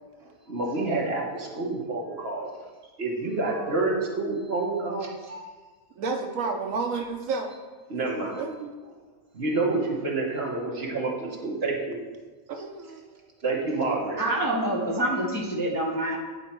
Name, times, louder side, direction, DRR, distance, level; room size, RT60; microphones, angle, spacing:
voice 1, 0.2-2.5 3.0-5.5 7.9-8.4 9.3-12.0 13.4-14.2, right 3 dB, 50° right, -2 dB, 1.5 m, -28 dB
voice 2, 6.0-7.5 8.4-8.7 12.5-13.0, right 4 dB, 75° right, 4 dB, 1.1 m, -30 dB
voice 3, 14.2-16.2, right 1 dB, 20° left, -2 dB, 0.7 m, -26 dB
9.7 x 4.3 x 4.4 m, 1.3 s
omnidirectional pair, 1.4 m